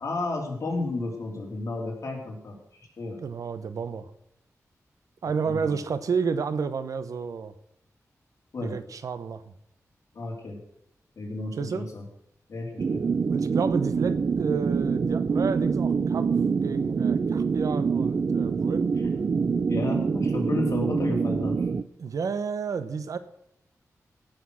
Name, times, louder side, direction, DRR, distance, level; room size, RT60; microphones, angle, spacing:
voice 1, 0.0-2.6 3.0-3.2 5.4-5.8 8.5-8.7 10.1-10.6 11.2-12.0 12.5-13.0 19.0-19.1 19.7-21.7, left 2 dB, 60° left, 0 dB, 3.4 m, -32 dB
voice 2, 3.2-4.1 5.2-7.5 8.6-9.4 11.5-11.9 13.3-16.3 16.6-18.9 22.0-23.2, right 5 dB, 75° right, 13 dB, 0.9 m, -30 dB
sound 1, 12.8-21.8, right 5 dB, 45° right, 0.4 m, -25 dB
16.5 x 6.6 x 6.3 m, 0.77 s
wide cardioid pair, 125°, 6 cm